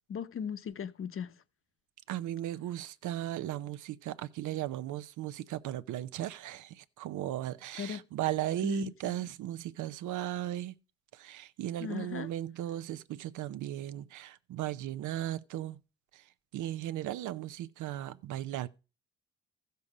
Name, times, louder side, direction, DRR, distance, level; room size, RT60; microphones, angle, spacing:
voice 1, 0.1-1.3 7.8-8.0 8.6-9.1 11.8-12.3, left 7 dB, 45° left, 0.9 m, -38 dB
voice 2, 2.1-10.7 11.1-15.8 16.1-16.2 16.5-18.7, right 13 dB, 80° right, 0.6 m, -36 dB
14.0 x 6.9 x 4.9 m
cardioid pair, 90°, 30 cm